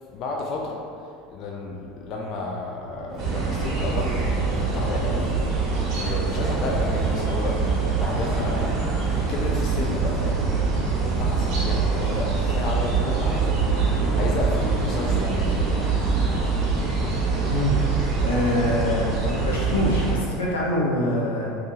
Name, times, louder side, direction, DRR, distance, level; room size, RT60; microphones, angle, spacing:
voice 1, 0.1-5.4 5.9-8.7 9.3-10.4 11.2-15.9, left 3 dB, 55° left, -1 dB, 0.4 m, -32 dB
sound 1, 2.8-11.7, right 2 dB, 90° right, 0.5 m, -41 dB
Vehicle, 3.1-12.2, right 2 dB, 30° right, 0.7 m, -40 dB
sound 2, 3.2-20.1, right 4 dB, 60° right, 1.0 m, -24 dB
voice 2, 18.2-21.5, left 1 dB, 90° left, -4 dB, 0.7 m, -24 dB
2.8 x 2.6 x 3.8 m, 2.3 s
hypercardioid pair, 85°, 0 cm